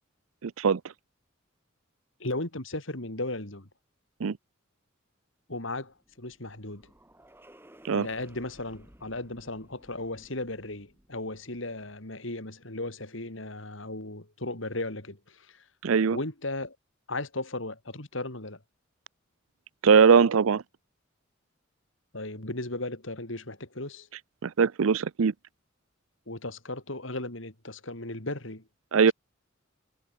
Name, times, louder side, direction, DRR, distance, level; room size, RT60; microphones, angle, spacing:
voice 1, 0.4-0.8 4.2-4.3 7.9-8.1 15.8-16.2 19.8-20.6 24.4-25.3 28.9-29.1, right 6 dB, 85° right, 0.5 m, -21 dB
voice 2, 2.2-3.7 5.5-6.9 7.9-15.6 16.1-16.8 17.1-18.6 22.1-24.1 26.3-28.6 29.0-29.1, left 2 dB, 70° left, 4.2 m, -36 dB
sound 1, 5.9-12.2, right 1 dB, 10° right, 5.1 m, -57 dB
head